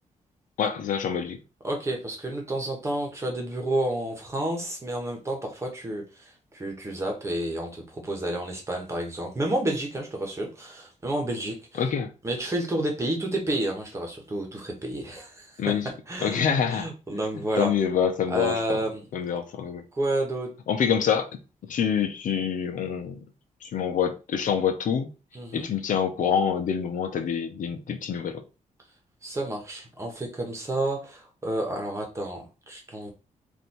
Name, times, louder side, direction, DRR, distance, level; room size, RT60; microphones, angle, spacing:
voice 1, 0.6-1.4 11.8-12.1 15.6-15.9 16.2-16.9 17.6-18.8 19.1-19.8 20.7-21.3 21.7-23.2 23.6-25.1 25.5-28.4, left 7 dB, 70° left, 0.8 m, -26 dB
voice 2, 1.6-11.8 12.2-15.5 16.1-16.4 16.7-17.7 18.3-19.0 20.0-20.5 25.3-25.7 29.2-33.1, right 1 dB, 20° right, 1.2 m, -30 dB
3.4 x 2.7 x 4.3 m
wide cardioid pair, 155°, 14 cm